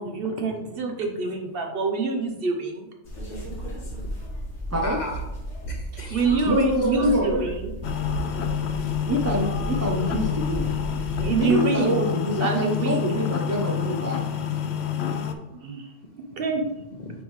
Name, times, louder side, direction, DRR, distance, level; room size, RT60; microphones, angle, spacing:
voice 1, 0.0-2.9 6.1-7.9 11.2-12.0 12.4-13.0 15.5-15.9 16.4-16.6, right 4 dB, 60° right, 3 dB, 1.0 m, -26 dB
sound 1, 3.0-11.4, right 1 dB, 90° left, 2.0 m, -34 dB
voice 2, 4.8-5.2 5.7-7.1 16.0-17.2, left 2 dB, 45° left, 2 dB, 0.8 m, -39 dB
voice 3, 6.5-7.4 9.1-10.8 11.4-14.2, equal, 25° right, -2 dB, 0.4 m, -26 dB
sound 2, 7.8-15.3, left 8 dB, 70° left, 0.8 m, -28 dB
8.5 x 3.5 x 3.1 m, 0.97 s
omnidirectional pair, 1.2 m